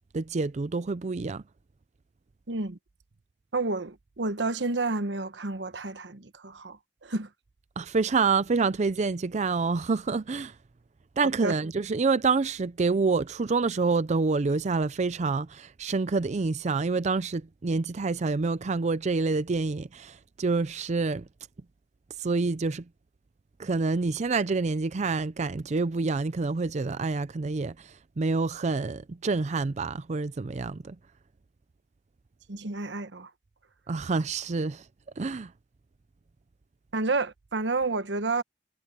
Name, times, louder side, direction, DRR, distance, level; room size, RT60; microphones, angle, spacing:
voice 1, 0.1-1.4 7.8-10.6 11.2-21.3 22.2-22.9 23.6-31.0 33.9-34.9 35.2-35.5, right 4 dB, 40° right, 0.5 m, -27 dB
voice 2, 2.5-2.8 3.5-7.3 11.4-11.5 32.5-33.3 36.9-38.4, right 3 dB, 90° right, 1.1 m, -30 dB
head